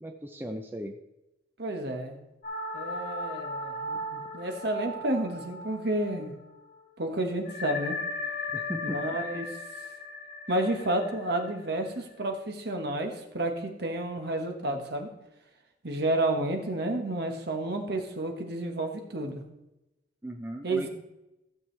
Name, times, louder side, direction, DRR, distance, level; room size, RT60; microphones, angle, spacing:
voice 1, 0.0-1.0 8.5-9.0 20.2-20.9, equal, 10° right, 4 dB, 0.6 m, -37 dB
voice 2, 1.6-2.3 2.7-6.3 7.0-8.0 8.8-9.5 10.5-15.1 15.8-19.4 20.6-20.9, right 1 dB, 60° right, 4 dB, 1.3 m, -31 dB
sound 1, 2.4-6.4 6.7-6.8 7.4-12.1, left 2 dB, 45° left, 3.0 m, -37 dB
15.5 x 7.2 x 3.3 m, 0.97 s
head